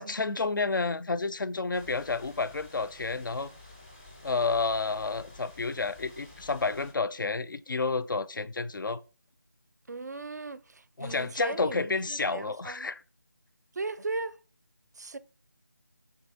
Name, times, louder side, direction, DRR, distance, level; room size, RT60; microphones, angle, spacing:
voice 1, 0.0-3.5 4.2-9.0 11.0-13.0, left 4 dB, 75° left, 0.4 m, -30 dB
sound 1, 1.7-6.9, left 2 dB, 10° left, 0.4 m, -51 dB
voice 2, 9.9-12.9 13.7-14.4 15.0-15.2, right 3 dB, 55° right, 0.4 m, -37 dB
3.6 x 3.0 x 4.1 m
figure-of-eight pair, 165°, 11 cm